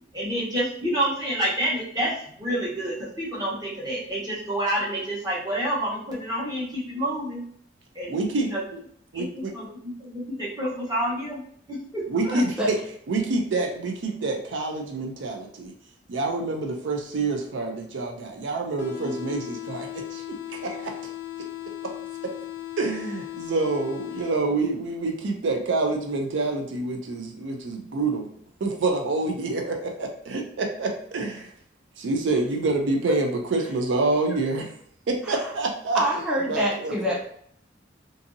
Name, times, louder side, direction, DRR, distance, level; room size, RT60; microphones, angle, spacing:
voice 1, 0.1-7.4 7.9-8.2 8.5-8.6 9.1-11.4 11.7-12.4 19.0-19.1, right 1 dB, 20° right, -6 dB, 0.9 m, -28 dB
voice 2, 8.1-8.8 9.1-9.5 12.1-12.8 13.1-15.7 16.1-20.9 22.8-28.3 28.6-31.5 32.0-34.7 35.1-36.0 36.5-37.1, right 3 dB, 80° right, 3 dB, 0.4 m, -27 dB
sound 1, 18.8-24.8, left 14 dB, 65° left, 0.4 m, -37 dB
voice 3, 35.9-37.2, equal, 5° right, -6 dB, 0.5 m, -25 dB
2.6 x 2.6 x 2.6 m, 0.63 s
head